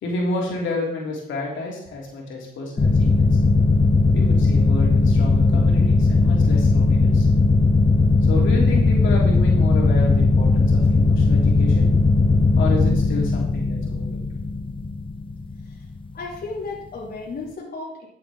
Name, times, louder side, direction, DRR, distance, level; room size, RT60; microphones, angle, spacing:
voice 1, 0.0-3.4 4.1-7.3 8.3-11.9 12.6-14.2, left 2 dB, 75° left, -2 dB, 3.0 m, -30 dB
sound 1, 2.8-16.0, left 3 dB, 25° left, 0.8 m, -18 dB
voice 2, 16.1-18.1, left 3 dB, 50° left, -3 dB, 2.6 m, -34 dB
11.5 x 7.6 x 3.7 m, 0.68 s
cardioid pair, 90°, 20 cm